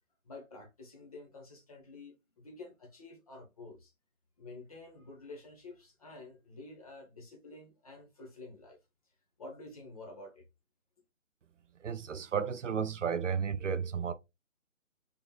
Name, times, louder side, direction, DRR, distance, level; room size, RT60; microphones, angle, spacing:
voice 1, 0.2-3.9 4.4-8.8 9.4-10.4, left 2 dB, 25° left, 1.0 m, -49 dB
voice 2, 11.8-14.1, right 7 dB, 65° right, 0.5 m, -33 dB
3.8 x 3.7 x 2.2 m
figure-of-eight pair, 160°, 41 cm